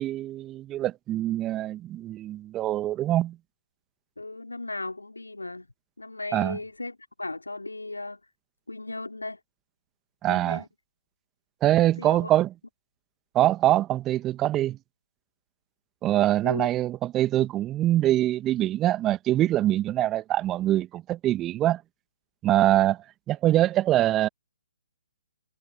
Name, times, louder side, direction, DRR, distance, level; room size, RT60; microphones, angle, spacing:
voice 1, 0.0-3.4 6.3-6.6 10.2-10.6 11.6-12.5 13.4-14.8 16.0-21.8 22.4-23.0 23.3-24.3, right 13 dB, 20° right, 1.8 m, -24 dB
voice 2, 4.2-5.7 6.0-8.2 8.7-9.4 10.3-10.7 11.8-12.3 16.4-16.7, left 2 dB, 80° left, 4.4 m, -36 dB
figure-of-eight pair, 130°, 0 cm